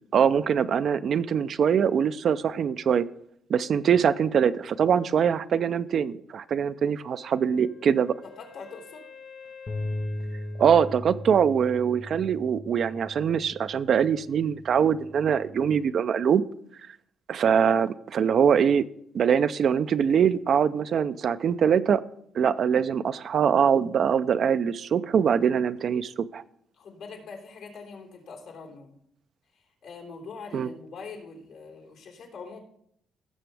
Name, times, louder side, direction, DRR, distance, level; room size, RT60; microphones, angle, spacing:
voice 1, 0.1-3.1 3.5-8.2 10.6-16.4 17.3-18.9 19.1-22.0 22.3-26.4 30.5-30.7, right 7 dB, 60° right, 13 dB, 0.4 m, -23 dB
Wind instrument woodwind instrument, 7.2-12.0, left 5 dB, 60° left, 1.2 m, -50 dB
voice 2, 8.4-9.1 24.9-25.1 26.7-29.0 29.5-32.6, left 4 dB, 85° left, -1 dB, 3.2 m, -43 dB
sound 1, 9.7-15.9, left 1 dB, 35° left, 1.0 m, -38 dB
17.5 x 6.8 x 3.4 m, 0.69 s
cardioid pair, 90°, 0 cm